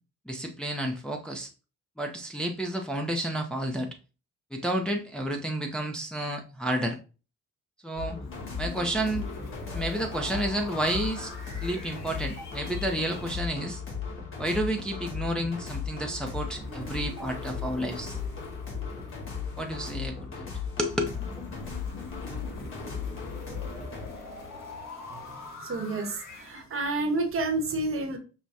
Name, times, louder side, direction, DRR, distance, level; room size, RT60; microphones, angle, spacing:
voice 1, 0.3-1.5 2.0-3.9 4.5-7.0 7.8-8.2 8.6-9.3 9.7-11.3 11.6-13.8 14.4-18.2 19.6-20.5 20.8-21.1, right 1 dB, 5° left, 0.6 m, -31 dB
sound 1, 8.0-24.1, left 6 dB, 45° left, 1.6 m, -37 dB
sound 2, 8.2-13.3 16.4-20.2 20.9-26.6, left 2 dB, 60° left, 1.6 m, -44 dB
voice 2, 25.6-28.2, right 2 dB, 45° right, 0.9 m, -29 dB
6.0 x 2.1 x 2.7 m
cardioid pair, 90°, 30 cm